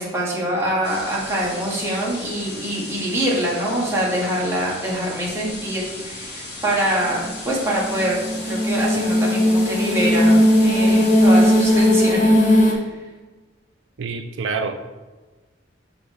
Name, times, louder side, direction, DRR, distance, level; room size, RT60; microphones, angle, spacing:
voice 1, 0.0-8.2 8.4-12.3 12.7-12.8, right 1 dB, 15° right, -5 dB, 1.6 m, -24 dB
sound 1, 0.8-11.9, left 2 dB, 60° left, 2.2 m, -36 dB
sound 2, 7.3-12.7, equal, 40° left, 1.0 m, -17 dB
voice 2, 14.0-14.9, right 4 dB, 75° right, 6 dB, 0.4 m, -27 dB
5.7 x 4.3 x 5.2 m, 1.2 s
head